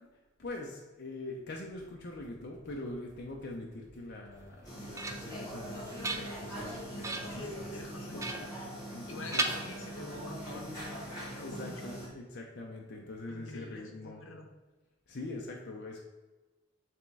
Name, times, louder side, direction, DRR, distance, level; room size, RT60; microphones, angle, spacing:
voice 1, 0.4-5.9 6.1-9.5 11.3-14.2 15.1-16.1, left 2 dB, 55° left, -1 dB, 0.7 m, -43 dB
sound 1, 1.7-7.8, equal, 40° right, 1.2 m, -60 dB
sound 2, 4.5-5.4 5.8-6.6 7.0-7.5 8.2-9.0 9.3-10.3, right 3 dB, 15° right, 0.4 m, -37 dB
sound 3, 4.6-12.1, equal, 20° left, 2.0 m, -42 dB
voice 2, 7.2-8.2 8.5-8.7 9.1-11.0 11.3-11.7 13.3-14.5, left 2 dB, 80° left, 3 dB, 1.0 m, -46 dB
8.6 x 3.5 x 3.3 m, 1.2 s
head